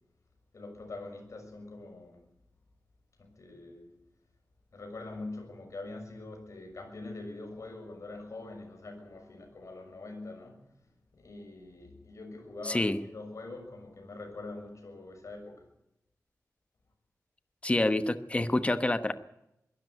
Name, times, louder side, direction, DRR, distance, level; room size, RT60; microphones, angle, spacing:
voice 1, 0.5-2.3 3.2-3.9 4.7-10.6 11.1-15.7, left 2 dB, 55° left, 4 dB, 6.4 m, -44 dB
voice 2, 12.6-13.0 17.6-19.2, left 2 dB, 20° left, 11 dB, 1.1 m, -27 dB
22.0 x 13.0 x 9.4 m, 0.84 s
wide cardioid pair, 110°, 6 cm